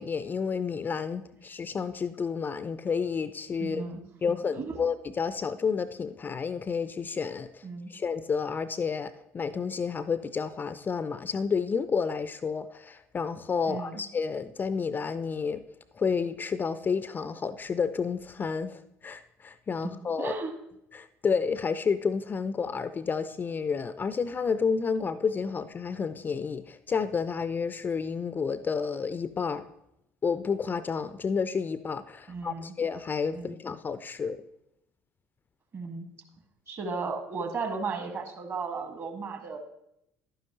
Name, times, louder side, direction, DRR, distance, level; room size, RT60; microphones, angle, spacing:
voice 1, 0.0-3.8 4.2-15.6 15.9-20.3 20.9-29.6 30.2-34.4, left 5 dB, 25° left, 14 dB, 0.4 m, -30 dB
voice 2, 3.6-4.0 4.5-4.7 7.6-7.9 13.7-14.0 19.8-19.9 20.2-20.5 32.3-32.7 33.3-33.6 35.7-36.1 36.7-39.6, right 4 dB, 40° right, 6 dB, 1.4 m, -35 dB
11.0 x 9.4 x 2.8 m, 0.81 s
figure-of-eight pair, 55°, 7 cm